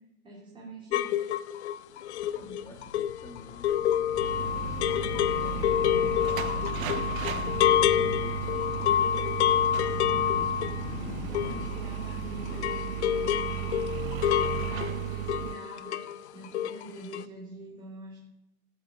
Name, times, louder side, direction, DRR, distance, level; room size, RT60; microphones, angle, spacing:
voice 1, 0.2-1.3 2.4-3.0 9.8-10.5 11.2-18.2, right 1 dB, 10° right, -4 dB, 3.1 m, -45 dB
sound 1, 0.9-12.2 12.5-16.2 16.4-16.9 17.1-17.2, left 11 dB, 55° left, 0.8 m, -28 dB
sound 2, 2.2-14.2, left 11 dB, 85° left, 0.7 m, -41 dB
voice 2, 2.3-8.8, left 1 dB, 10° left, 3 dB, 2.0 m, -51 dB
sound 3, 4.1-15.6, right 16 dB, 80° right, 0.6 m, -35 dB
13.0 x 7.9 x 7.1 m, 0.92 s
hypercardioid pair, 150°, 41 cm